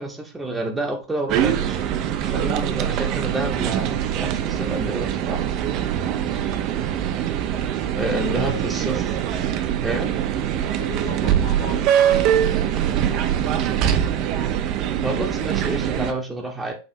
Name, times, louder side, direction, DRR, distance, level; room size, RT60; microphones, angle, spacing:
voice 1, 0.0-1.9 2.2-5.4 7.9-9.3 9.8-10.1 15.0-16.7, right 2 dB, 10° right, 0.8 m, -29 dB
sound 1, 1.3-16.1, right 10 dB, 40° right, 0.5 m, -23 dB
voice 2, 8.3-8.7 10.6-13.6, left 5 dB, 50° left, 1.3 m, -38 dB
6.5 x 2.8 x 2.6 m
figure-of-eight pair, 90°, 0 cm